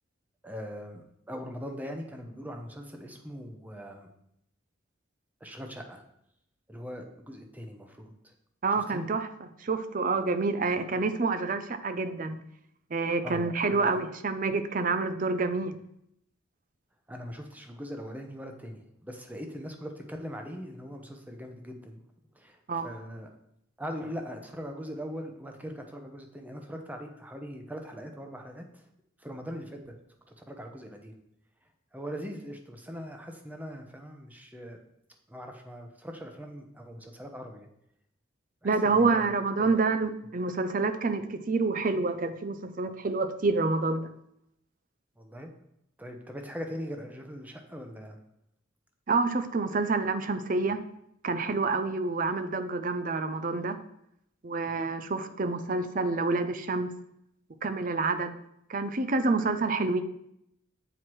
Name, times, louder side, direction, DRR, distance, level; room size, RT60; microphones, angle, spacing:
voice 1, 0.4-4.1 5.4-6.0 6.7-8.3 8.7-9.0 13.2-14.0 17.1-22.0 22.3-23.3 23.8-28.8 29.2-29.9 30.4-31.1 31.9-34.8 35.3-37.7 38.6-39.3 39.6-39.8 45.2-45.5 46.0-48.2, equal, 10° right, 4 dB, 0.8 m, -41 dB
voice 2, 8.6-12.4 12.9-15.8 22.7-22.9 38.6-44.1 49.1-50.8 51.2-53.8 54.4-56.9 57.6-58.4 58.7-60.0, right 3 dB, 45° right, 11 dB, 0.5 m, -28 dB
7.9 x 4.5 x 4.6 m, 0.77 s
head